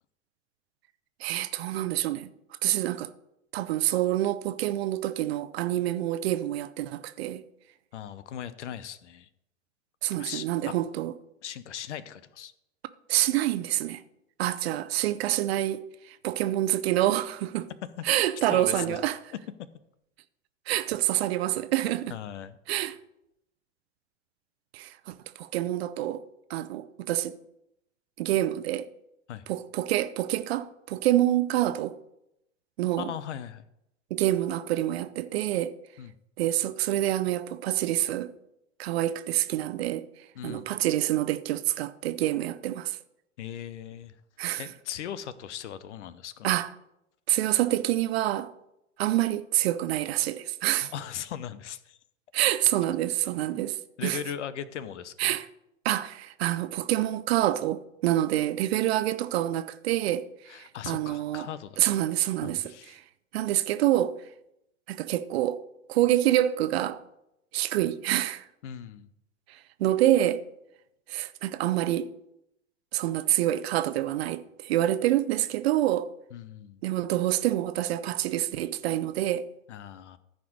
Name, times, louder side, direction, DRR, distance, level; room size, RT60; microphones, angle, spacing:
voice 1, 1.2-2.3 2.6-3.1 3.5-7.4 10.0-11.1 13.1-14.0 14.4-17.7 18.0-19.2 20.7-22.1 22.7-23.0 24.7-26.2 26.5-27.4 28.2-28.9 29.5-32.0 32.8-33.1 34.1-35.7 36.4-38.3 38.8-40.1 40.4-43.0 44.4-44.6 46.4-46.7 47.3-48.5 49.0-50.9 52.3-54.2 55.2-55.5 55.8-61.5 61.8-62.6 63.3-64.1 64.9-65.6 65.9-67.0 67.5-68.4 69.5-70.4 71.1-72.1 72.9-76.1 76.8-79.5, right 14 dB, 50° right, 0.7 m, -27 dB
voice 2, 7.9-9.3 10.2-10.7 11.4-12.5 18.0-18.1 18.4-19.0 22.1-22.6 29.3-29.4 33.0-33.6 36.0-36.1 40.3-40.7 43.4-44.2 44.6-46.5 50.8-52.0 53.5-53.6 54.0-55.4 60.5-62.0 62.4-63.0 68.6-69.1 76.3-76.8 79.7-80.2, left 9 dB, 60° left, 0.9 m, -39 dB
14.0 x 5.2 x 6.4 m
figure-of-eight pair, 95°, 39 cm